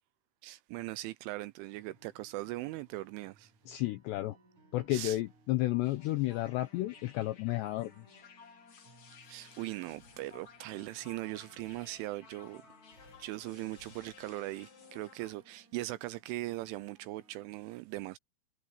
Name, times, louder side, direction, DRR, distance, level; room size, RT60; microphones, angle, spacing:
voice 1, 0.4-3.5 4.9-5.2 9.3-12.6 13.2-18.2, right 18 dB, 85° right, 2.8 m, -40 dB
sound 1, 1.7-17.5, right 2 dB, 35° right, 7.9 m, -65 dB
voice 2, 3.7-4.4 4.7-8.0, left 16 dB, 85° left, 2.5 m, -32 dB
sound 2, 5.8-15.3, left 6 dB, 40° left, 3.7 m, -57 dB
Breathing, 8.5-10.8 11.6-12.5 12.9-14.7, left 2 dB, 25° left, 6.6 m, -65 dB
omnidirectional pair, 5.9 m